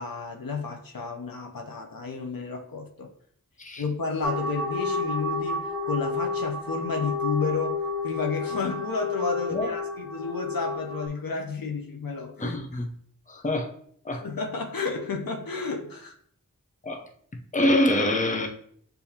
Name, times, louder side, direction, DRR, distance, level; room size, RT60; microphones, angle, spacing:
voice 1, 0.0-3.1 3.8-12.6 14.1-16.1, left 4 dB, 80° left, 0.7 m, -32 dB
sound 1, 4.2-11.1, left 3 dB, ahead, 1.3 m, -30 dB
voice 2, 12.4-12.9 13.3-13.7 14.1-14.2 16.8-17.0 17.5-18.5, left 1 dB, 25° left, 0.6 m, -25 dB
6.8 x 2.7 x 2.8 m
wide cardioid pair, 45°, 34 cm